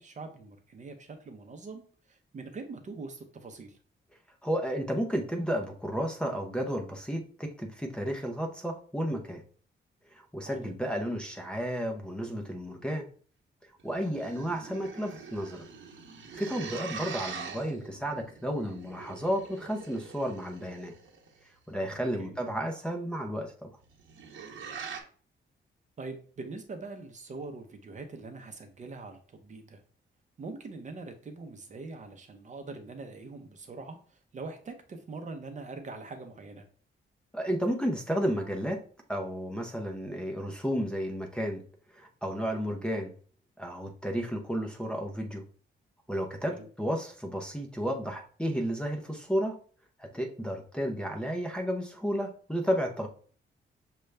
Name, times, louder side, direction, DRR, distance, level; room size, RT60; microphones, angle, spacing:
voice 1, 0.0-3.8 10.5-10.7 22.2-22.4 26.0-29.8 30.4-36.6 46.5-46.7, right 3 dB, 40° right, 5 dB, 0.6 m, -43 dB
voice 2, 4.4-9.4 10.1-13.1 13.8-15.7 16.4-20.9 21.7-23.7 37.3-38.8 39.1-41.6 41.9-43.1 43.6-45.4 46.1-49.5 50.0-53.1, equal, 5° left, 0 dB, 0.6 m, -32 dB
sound 1, 13.8-21.4 23.8-25.0, right 5 dB, 80° right, 1.0 m, -43 dB
6.4 x 2.3 x 3.2 m, 0.44 s
wide cardioid pair, 145°, 20 cm